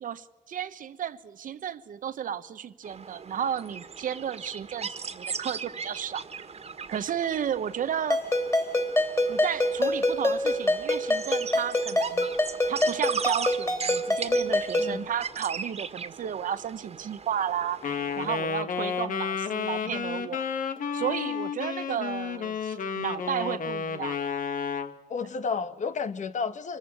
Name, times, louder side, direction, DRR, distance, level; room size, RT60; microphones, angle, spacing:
voice 1, 0.0-6.2 6.9-8.2 9.3-12.3 12.7-17.8 18.2-20.4 20.9-24.2, right 9 dB, 85° right, 1.1 m, -33 dB
sound 1, 2.8-18.4, right 6 dB, 55° right, 1.8 m, -38 dB
Ringtone, 8.1-15.0, left 1 dB, 20° left, 3.5 m, -26 dB
Wind instrument woodwind instrument, 17.8-24.9, left 6 dB, 85° left, 1.6 m, -31 dB
voice 2, 25.1-26.8, left 5 dB, 65° left, 1.4 m, -31 dB
25.5 x 15.0 x 9.7 m
wide cardioid pair, 105°, 13 cm